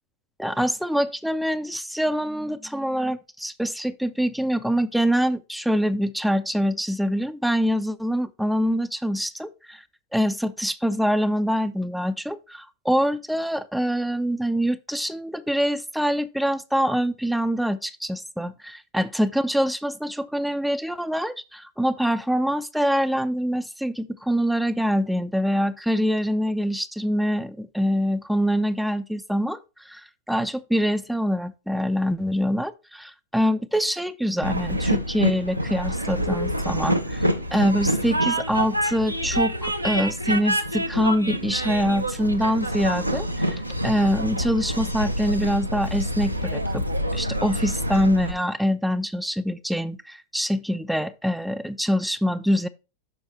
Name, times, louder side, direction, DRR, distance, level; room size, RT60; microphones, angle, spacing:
voice 1, 0.4-9.8 10.1-46.9 47.1-52.7, equal, ahead, 0.4 m, -25 dB
Train, 34.4-48.3, equal, 85° right, 0.7 m, -27 dB
7.0 x 5.5 x 4.3 m
figure-of-eight pair, 90°, 0 cm